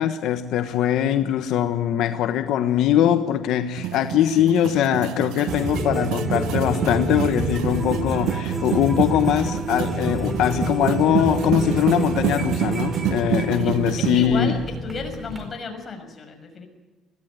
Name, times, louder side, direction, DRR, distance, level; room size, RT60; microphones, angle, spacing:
voice 1, 0.0-14.5, left 10 dB, 75° left, 8 dB, 1.2 m, -22 dB
sound 1, 3.8-14.3, right 13 dB, 85° right, 0.7 m, -28 dB
sound 2, 5.5-15.5, right 1 dB, 20° right, 4.9 m, -29 dB
voice 2, 13.5-16.7, left 3 dB, 30° left, 3 dB, 6.1 m, -34 dB
22.0 x 16.5 x 9.5 m, 1.3 s
cardioid pair, 125°, 0 cm